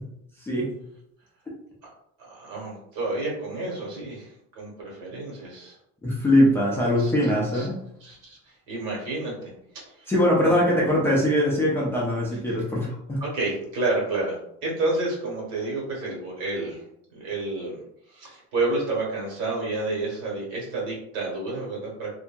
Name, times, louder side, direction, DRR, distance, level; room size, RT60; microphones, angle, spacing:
voice 1, 2.2-5.7 7.0-7.1 7.5-7.7 8.0-9.5 10.0-10.1 10.4-10.6 13.2-16.8 17.1-17.8 18.1-22.2, right 2 dB, 85° right, -3 dB, 1.3 m, -30 dB
voice 2, 6.0-7.8 10.1-13.2, left 1 dB, 10° left, -6 dB, 0.3 m, -22 dB
2.7 x 2.5 x 2.2 m, 0.75 s
cardioid pair, 170°, 32 cm